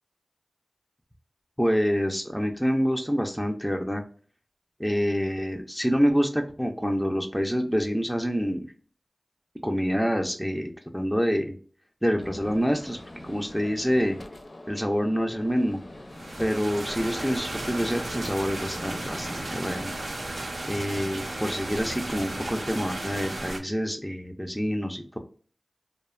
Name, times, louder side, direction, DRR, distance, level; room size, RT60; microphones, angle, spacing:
voice 1, 1.6-4.0 4.8-8.7 9.6-11.6 12.0-13.0 13.2-14.2 14.7-15.8 16.4-19.9 20.6-25.2, equal, ahead, 2 dB, 0.3 m, -27 dB
Gunshot gunfire, 12.2-20.1, left 1 dB, 60° left, 0.5 m, -44 dB
sound 1, 16.1-23.6, right 1 dB, 80° right, 0.5 m, -34 dB
2.6 x 2.1 x 2.3 m, 0.42 s
cardioid pair, 40°, 0 cm